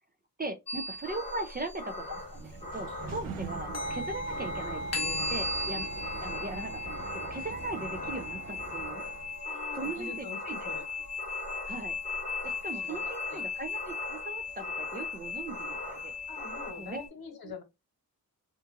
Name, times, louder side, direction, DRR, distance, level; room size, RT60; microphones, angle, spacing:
voice 1, 0.4-5.9 6.2-9.0 9.7-10.7 11.7-12.0 12.4-16.1 16.7-17.0 17.4-17.6, right 2 dB, 25° right, 0.4 m, -39 dB
sound 1, 0.7-2.1 3.7-17.1, left 3 dB, 45° left, 0.7 m, -37 dB
sound 2, 1.0-16.7, left 1 dB, 20° left, 0.9 m, -42 dB
Sliding door, 2.0-9.4, right 3 dB, 65° right, 0.8 m, -44 dB
voice 2, 9.4-10.8 12.8-13.5 16.3-17.6, left 4 dB, 75° left, 1.1 m, -44 dB
2.8 x 2.4 x 2.4 m
wide cardioid pair, 130°, 36 cm